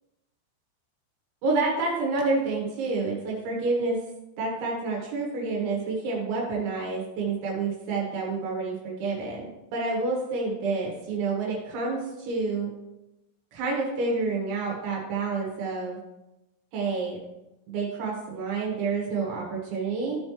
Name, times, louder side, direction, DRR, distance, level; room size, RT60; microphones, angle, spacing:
voice 1, 1.4-4.0 4.4-12.7 13.5-16.0 16.7-17.2 17.7-20.2, right 3 dB, 70° right, -3 dB, 3.6 m, -28 dB
14.5 x 5.3 x 3.1 m, 0.96 s
omnidirectional pair, 5.9 m